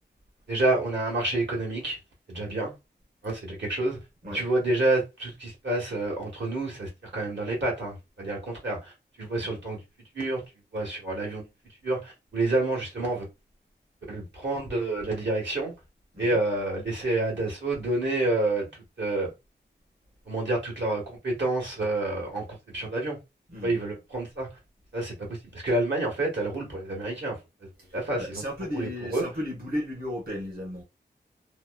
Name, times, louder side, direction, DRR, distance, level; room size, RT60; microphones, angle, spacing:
voice 1, 0.5-2.0 2.3-2.7 3.2-4.0 4.3-8.9 9.2-9.8 10.1-10.4 10.7-11.5 11.8-13.3 14.1-15.7 16.2-18.7 19.0-19.3 20.3-23.2 23.6-24.5 24.9-27.4 27.9-28.4 28.7-29.2, right 2 dB, 75° right, 1.4 m, -28 dB
voice 2, 27.8-30.8, left 1 dB, 50° right, 1.0 m, -35 dB
2.9 x 2.0 x 2.2 m
wide cardioid pair, 65°, 19 cm